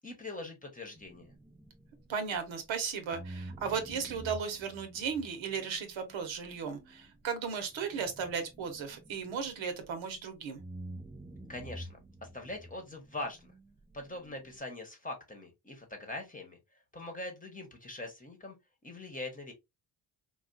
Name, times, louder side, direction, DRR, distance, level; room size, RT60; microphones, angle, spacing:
voice 1, 0.0-1.3 11.5-13.5 13.9-16.6 16.9-18.6 18.8-19.5, left 2 dB, 15° left, 1.0 m, -42 dB
sound 1, 1.0-2.7 3.1-10.2 10.6-14.6, right 1 dB, 5° right, 0.3 m, -49 dB
voice 2, 2.1-10.6, right 6 dB, 75° right, 1.0 m, -36 dB
3.4 x 2.4 x 2.5 m
cardioid pair, 95°, 47 cm